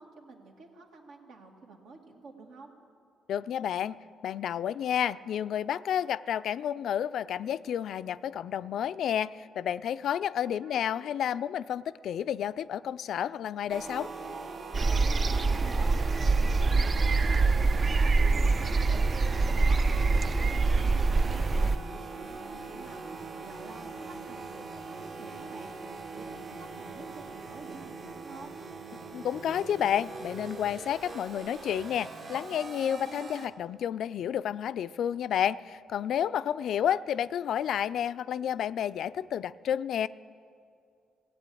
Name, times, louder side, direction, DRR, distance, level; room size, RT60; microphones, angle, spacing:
voice 1, 0.0-2.7 10.4-10.9 15.3-15.9 16.3-28.5 36.8-37.0, right 3 dB, 80° right, 1 dB, 2.0 m, -50 dB
voice 2, 3.3-4.0 4.2-14.1 29.1-40.1, left 9 dB, 70° left, 15 dB, 0.3 m, -30 dB
sound 1, 13.7-33.5, right 3 dB, 55° right, 1.3 m, -41 dB
sound 2, 14.7-21.8, right 3 dB, 35° right, 0.3 m, -25 dB
17.0 x 8.2 x 8.5 m, 2.4 s
cardioid pair, 90°, 0 cm